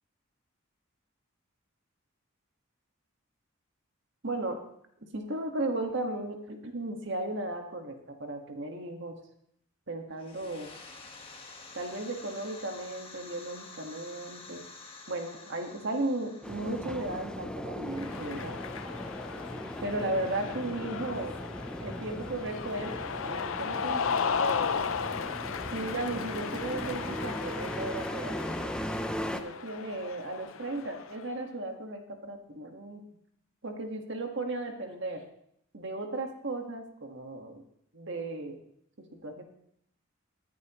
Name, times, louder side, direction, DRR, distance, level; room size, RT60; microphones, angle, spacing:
voice 1, 4.2-4.6 5.1-9.2 9.9-10.7 11.7-14.6 15.1-18.6 19.8-21.4 21.8-22.9 23.2-24.1 25.7-28.7 29.3-33.1 33.6-35.2 35.7-37.6 37.9-38.6 39.0-39.4, right 2 dB, 60° right, 4 dB, 1.7 m, -35 dB
sound 1, 10.1-18.7, left 3 dB, 25° left, 1.5 m, -50 dB
sound 2, 16.4-29.4, equal, 5° left, 0.6 m, -38 dB
Cheering, 17.9-31.3, left 6 dB, 75° left, 0.6 m, -35 dB
19.0 x 10.5 x 3.1 m, 0.70 s
head